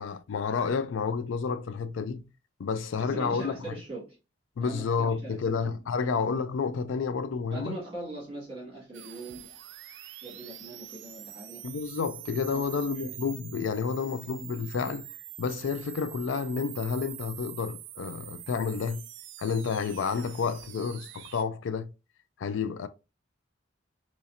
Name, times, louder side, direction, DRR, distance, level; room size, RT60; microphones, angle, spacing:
voice 1, 0.0-2.2 2.6-3.8 4.6-7.8 11.6-15.1 15.4-19.1 19.4-21.9 22.4-22.9, left 5 dB, 75° left, 0.4 m, -30 dB
voice 2, 2.8-4.2 4.6-5.6 6.0-6.1 7.5-9.5 10.2-11.6 12.5-12.6 12.9-13.1, right 2 dB, 25° right, 1.8 m, -41 dB
sound 1, 8.9-21.4, right 13 dB, 65° right, 0.4 m, -45 dB
4.1 x 3.1 x 2.4 m
head